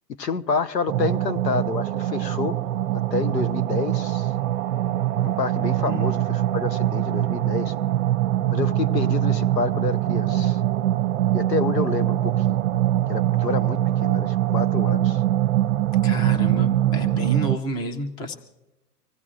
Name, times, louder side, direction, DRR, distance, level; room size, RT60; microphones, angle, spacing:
voice 1, 0.2-2.6 3.1-4.3 5.2-7.7 8.5-10.6 11.3-12.6 13.1-15.2, left 5 dB, 90° left, 14 dB, 1.0 m, -28 dB
sound 1, 0.9-17.6, right 13 dB, 50° right, 0.6 m, -23 dB
voice 2, 16.0-18.3, equal, 10° left, 7 dB, 0.5 m, -29 dB
25.5 x 15.5 x 2.5 m, 0.98 s
hypercardioid pair, 130°, 49 cm